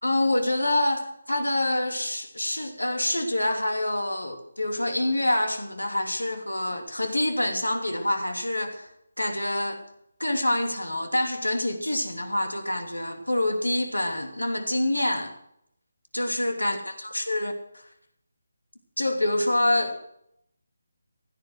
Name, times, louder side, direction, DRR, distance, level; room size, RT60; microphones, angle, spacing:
voice 1, 0.0-8.9 9.2-9.9 10.2-15.3 16.1-17.9 19.0-20.0, left 1 dB, 85° left, 2.9 m, -26 dB
16.0 x 11.0 x 6.2 m
figure-of-eight pair, 155°, 0 cm